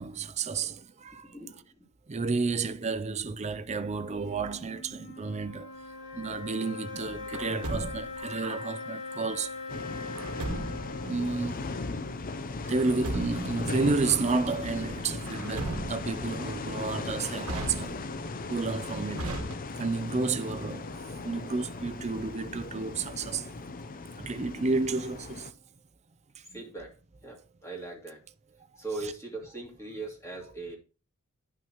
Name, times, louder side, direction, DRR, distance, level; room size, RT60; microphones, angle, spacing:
voice 1, 0.0-1.3 2.1-5.7 6.1-9.5 11.0-11.8 12.7-18.0 18.5-19.4 19.8-23.5 24.2-25.5 26.5-26.6, right 4 dB, 30° right, 0.5 m, -31 dB
voice 2, 1.2-1.7 26.5-28.2 28.8-30.8, right 3 dB, 15° left, 2.6 m, -40 dB
sound 1, 3.7-13.1, left 3 dB, 60° left, 1.2 m, -42 dB
Truck, 7.3-8.3 10.1-11.0 12.6-13.6 15.2-16.3 17.4-18.3 19.2-20.0, right 1 dB, 75° right, 1.3 m, -37 dB
sound 2, 9.7-25.5, left 3 dB, 40° left, 0.5 m, -37 dB
10.5 x 5.8 x 3.0 m
head